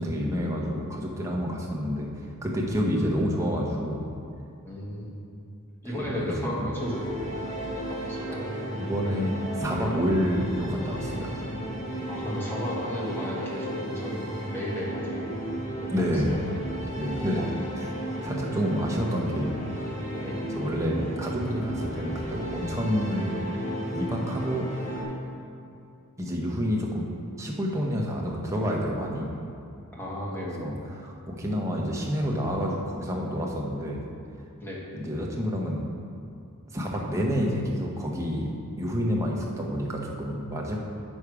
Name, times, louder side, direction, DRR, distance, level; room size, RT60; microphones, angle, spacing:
voice 1, 0.0-2.1 2.4-4.1 5.9-6.7 8.7-11.4 15.9-16.4 16.9-17.4 17.8-17.9 18.2-19.6 20.5-23.3 23.9-24.7 26.2-27.1 27.4-29.3 30.6-30.8 31.0-34.0 34.9-35.9 36.7-40.8, equal, 15° right, -2 dB, 1.1 m, -28 dB
voice 2, 4.6-5.2 5.8-7.3 7.8-8.5 12.1-15.4 15.8-16.4 17.3-17.7 20.2-20.4 29.9-30.6 34.6-34.8, left 1 dB, 10° left, -5 dB, 1.6 m, -34 dB
sound 1, 6.8-25.0, right 1 dB, 30° left, 1.8 m, -34 dB
8.5 x 6.4 x 4.8 m, 2.5 s
head